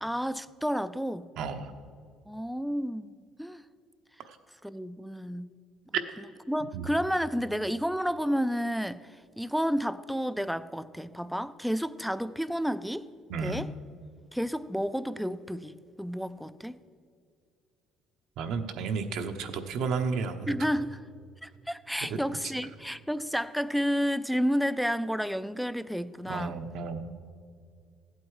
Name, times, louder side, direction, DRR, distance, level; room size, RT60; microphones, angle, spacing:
voice 1, 0.0-1.3 2.3-3.1 3.4-3.6 4.6-5.5 6.5-13.1 13.4-13.7 14.3-16.8 20.5-21.0 21.4-26.6, equal, ahead, 0.3 m, -31 dB
voice 2, 1.4-1.7 4.3-4.4 5.9-6.0 6.7-6.9 13.3-13.7 18.4-20.5 26.3-27.1, right 5 dB, 65° right, 0.9 m, -32 dB
15.0 x 8.3 x 4.8 m
cardioid pair, 130°, 0 cm